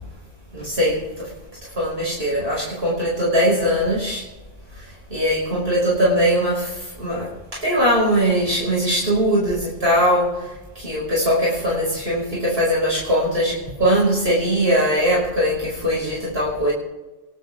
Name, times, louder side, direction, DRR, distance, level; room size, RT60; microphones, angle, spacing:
voice 1, 0.5-1.0 1.8-4.2 5.1-6.7 7.0-7.3 7.6-10.3 10.8-16.7, equal, 70° right, -5 dB, 5.8 m, -20 dB
28.5 x 12.0 x 3.5 m, 1.1 s
omnidirectional pair, 1.1 m